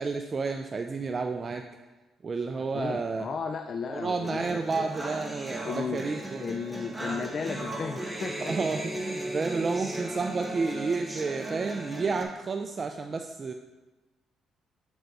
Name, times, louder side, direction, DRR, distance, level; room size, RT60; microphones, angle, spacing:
voice 1, 0.0-1.7 2.2-3.3 3.9-6.5 8.4-13.5, right 4 dB, 35° right, 5 dB, 0.4 m, -31 dB
voice 2, 2.6-4.9 5.6-6.1 6.4-8.5, left 5 dB, 50° left, 7 dB, 0.4 m, -35 dB
sound 1, 4.2-12.2, right 1 dB, 10° right, 1.1 m, -36 dB
7.7 x 4.6 x 4.0 m, 1.1 s
cardioid pair, 90°, 0 cm